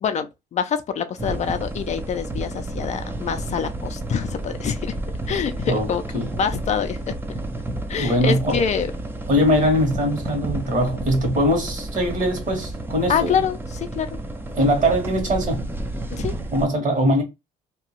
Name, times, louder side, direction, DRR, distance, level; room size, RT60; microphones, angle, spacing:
voice 1, 0.0-4.9 5.3-6.0 6.4-7.0 7.9-8.9 13.1-14.2 16.1-16.3, left 7 dB, 45° left, 0.5 m, -25 dB
sound 1, 1.2-16.7, right 2 dB, 15° right, 0.5 m, -31 dB
voice 2, 8.0-8.6 9.3-13.3 14.5-15.6 16.5-17.2, equal, 45° right, 1.5 m, -21 dB
2.8 x 2.2 x 2.9 m
cardioid pair, 110°, 17 cm